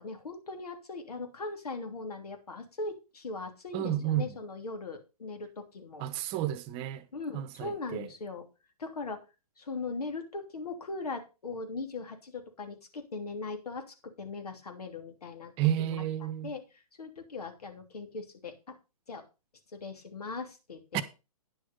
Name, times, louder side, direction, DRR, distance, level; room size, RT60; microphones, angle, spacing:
voice 1, 0.0-6.1 7.1-8.5 8.8-9.2 9.6-15.5 15.8-18.7 19.1-19.2 19.7-21.0, left 3 dB, 75° left, 3.0 m, -40 dB
voice 2, 3.7-4.3 6.0-7.0 7.3-8.1 15.6-16.5 20.9-21.0, right 11 dB, 30° right, 1.0 m, -31 dB
10.0 x 6.4 x 5.3 m
hypercardioid pair, 130°, 20 cm